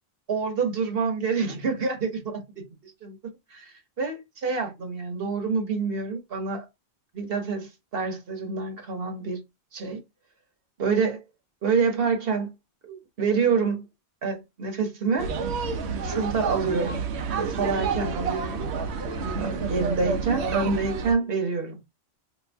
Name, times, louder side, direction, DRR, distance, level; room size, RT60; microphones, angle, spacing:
voice 1, 0.3-2.6 3.0-3.2 3.5-6.7 7.1-9.4 9.7-10.0 10.8-11.2 11.6-12.5 12.8-13.8 14.2-15.3 16.0-17.0 17.4-18.7 19.2-21.8, right 5 dB, 65° right, 1.2 m, -27 dB
sound 1, 15.2-21.1, right 4 dB, 90° right, 0.9 m, -29 dB
2.6 x 2.6 x 3.3 m
omnidirectional pair, 1.1 m